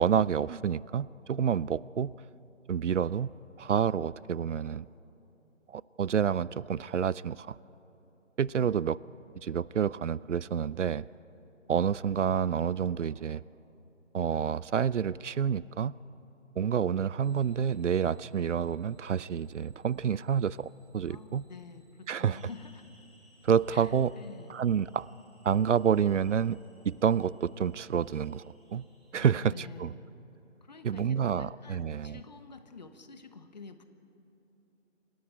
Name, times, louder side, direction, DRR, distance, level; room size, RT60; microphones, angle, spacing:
voice 1, 0.0-2.1 2.7-3.3 3.6-4.9 5.7-7.6 8.4-9.0 9.4-11.1 11.7-13.4 14.1-15.9 16.6-21.4 22.1-22.4 23.4-24.1 24.5-25.1 25.4-26.6 26.8-28.4 28.7-28.8 29.1-29.9 30.8-32.2, right 8 dB, 70° right, 21 dB, 0.5 m, -28 dB
sound 1, 17.2-29.3, equal, ahead, 1.1 m, -66 dB
voice 2, 21.1-22.9 23.7-24.5 29.1-30.1 30.6-33.8, left 4 dB, 35° left, 10 dB, 1.0 m, -48 dB
27.5 x 10.0 x 9.6 m, 3.0 s
figure-of-eight pair, 160°, 38 cm